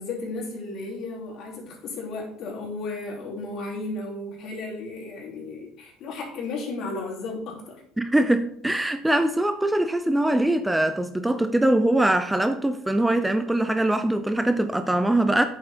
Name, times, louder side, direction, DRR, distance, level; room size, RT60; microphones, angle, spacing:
voice 1, 0.0-7.8, left 3 dB, 55° left, 3.3 m, -34 dB
voice 2, 8.0-15.4, right 1 dB, 5° right, 0.5 m, -22 dB
8.7 x 7.3 x 4.4 m
cardioid pair, 120°, 0 cm